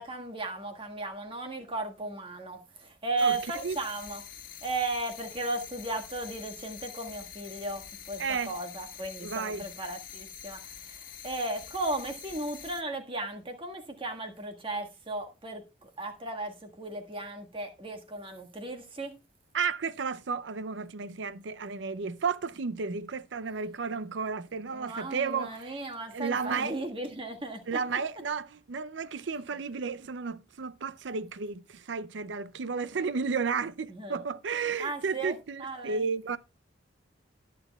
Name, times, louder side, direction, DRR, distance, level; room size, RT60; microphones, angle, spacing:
voice 1, 0.0-4.2 4.6-19.1 24.7-27.6 33.9-34.2 34.8-36.0, right 2 dB, 30° right, 1.6 m, -36 dB
sound 1, 3.2-12.8, left 9 dB, 50° left, 1.5 m, -46 dB
voice 2, 8.2-8.5 9.2-9.7 19.5-25.8 26.1-26.8 27.7-36.4, right 5 dB, 75° right, 0.6 m, -33 dB
19.5 x 6.9 x 2.3 m
head